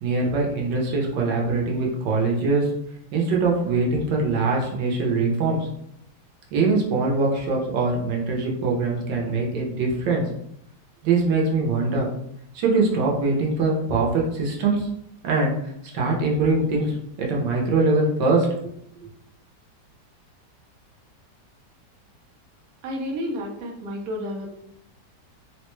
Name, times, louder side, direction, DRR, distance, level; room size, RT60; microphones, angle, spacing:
voice 1, 0.0-2.7 3.1-5.7 6.5-10.2 11.0-12.1 12.5-14.9 15.2-15.6 15.8-18.5, right 3 dB, 90° right, -1 dB, 1.4 m, -22 dB
voice 2, 22.8-24.5, equal, 65° right, -1 dB, 1.1 m, -31 dB
3.7 x 2.2 x 3.0 m, 0.76 s
omnidirectional pair, 1.8 m